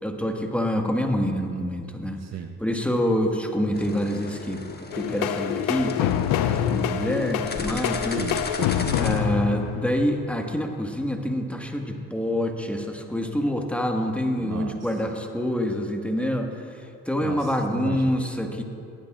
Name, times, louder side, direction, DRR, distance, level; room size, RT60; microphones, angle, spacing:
voice 1, 0.0-2.2 2.6-4.6 4.9-6.2 6.4-8.2 9.0-18.6, equal, 5° left, 2 dB, 1.6 m, -26 dB
voice 2, 2.2-2.6 8.1-9.0 14.4-14.8 17.2-18.1, right 8 dB, 45° right, 6 dB, 0.7 m, -35 dB
sound 1, 3.7-9.2, left 3 dB, 25° left, 1.3 m, -37 dB
sound 2, 4.9-10.4, left 9 dB, 70° left, 0.7 m, -26 dB
18.5 x 12.0 x 2.5 m, 2.4 s
hypercardioid pair, 50°, 36 cm